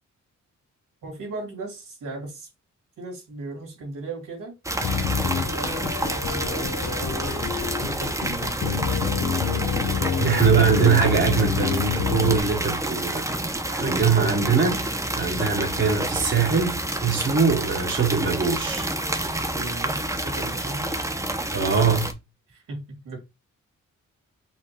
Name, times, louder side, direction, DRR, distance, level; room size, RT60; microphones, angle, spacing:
voice 1, 1.0-2.5 3.0-4.5 5.3-8.9 10.1-10.9 13.8-14.2 19.5-21.0 22.5-23.2, right 2 dB, 85° right, 3.0 m, -37 dB
sound 1, 4.6-22.1, right 1 dB, 10° right, 0.6 m, -29 dB
sound 2, 4.8-12.4, left 7 dB, 70° left, 0.8 m, -27 dB
voice 2, 10.2-13.2 13.7-18.9 21.5-22.1, right 5 dB, 35° right, 1.2 m, -22 dB
5.7 x 2.8 x 3.1 m
cardioid pair, 90°, 32 cm